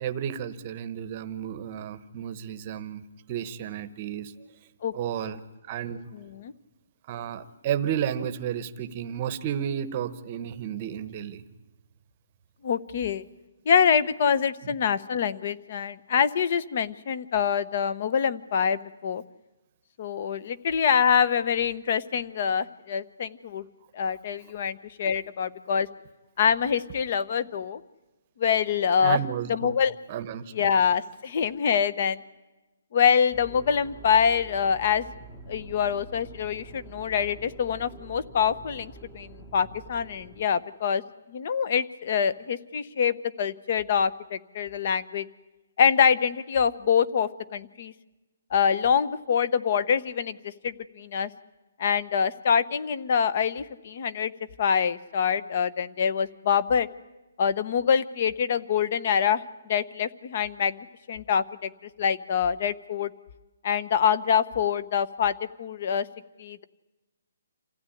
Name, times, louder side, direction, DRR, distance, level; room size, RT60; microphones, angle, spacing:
voice 1, 0.0-3.0 3.3-4.3 4.9-5.4 5.7-6.1 7.1-11.4 14.6-14.7 29.0-29.8 30.1-30.7, right 9 dB, 25° right, 12 dB, 1.0 m, -32 dB
voice 2, 6.1-6.5 12.6-13.2 13.7-19.2 20.0-23.6 23.9-25.9 26.4-27.8 28.4-29.2 29.5-29.9 30.5-32.2 32.9-35.1 35.5-41.0 41.3-45.3 45.8-47.9 48.5-50.4 50.6-51.3 51.8-54.3 54.6-56.9 57.4-59.4 59.7-61.7 62.0-63.1 63.6-66.1 66.4-66.6, left 7 dB, 35° left, 16 dB, 0.9 m, -25 dB
sound 1, 33.3-40.4, right 3 dB, 5° left, 1.0 m, -46 dB
27.5 x 16.0 x 10.0 m, 1.1 s
hypercardioid pair, 175°, 0 cm